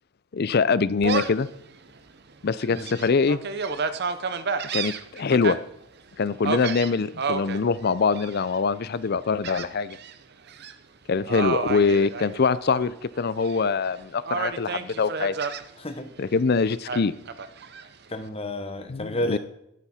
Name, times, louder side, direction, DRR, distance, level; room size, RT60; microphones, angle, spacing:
voice 1, 0.3-1.5 2.4-3.4 4.7-5.6 6.2-10.0 11.1-15.3 16.2-17.1 18.9-19.4, left 4 dB, 45° left, 17 dB, 0.4 m, -23 dB
Gull seagull, 1.0-1.5 2.0-2.1 2.6-5.6 6.4-7.6 8.1-8.6 9.4-10.1 10.5-10.7 11.3-12.8 13.2-13.9 14.3-15.6 16.9-17.9, right 5 dB, 45° right, 0.7 m, -30 dB
voice 2, 15.8-16.1 18.1-19.4, left 1 dB, 25° left, 7 dB, 1.0 m, -31 dB
12.5 x 9.1 x 4.2 m, 0.79 s
head